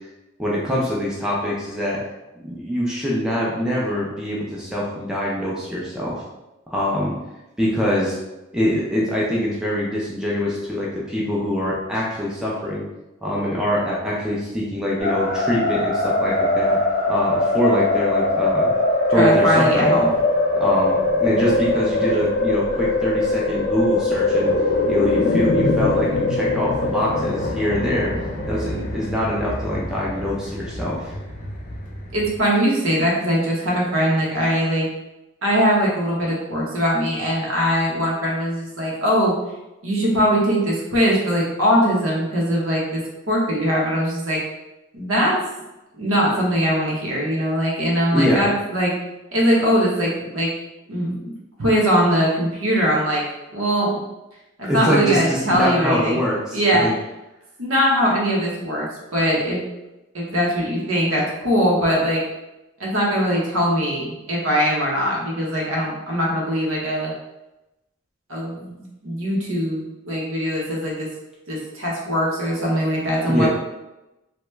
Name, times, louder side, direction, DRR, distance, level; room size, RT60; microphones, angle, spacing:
voice 1, 0.4-2.0 2.4-6.2 6.7-7.2 7.6-8.2 8.5-12.8 13.2-16.8 17.1-18.7 19.1-20.0 20.6-24.5 24.9-31.1 48.1-48.5 54.7-56.9 73.2-73.5, equal, 5° right, -5 dB, 0.4 m, -24 dB
sound 1, 15.0-32.4, left 2 dB, 40° left, 0.6 m, -22 dB
voice 2, 19.1-20.1 32.1-34.9 35.4-39.3 39.8-43.0 43.3-44.4 44.9-45.4 46.0-48.9 49.3-50.5 50.9-51.2 51.6-53.2 53.5-53.9 54.6-56.2 56.5-56.9 57.6-58.9 59.1-59.6 60.1-62.2 62.8-67.1 68.3-71.1 71.5-73.5, equal, 80° right, -4 dB, 0.9 m, -21 dB
sound 2, 20.9-30.5 30.9-31.0, left 3 dB, 75° left, 0.4 m, -28 dB
2.9 x 2.2 x 3.2 m, 0.98 s
head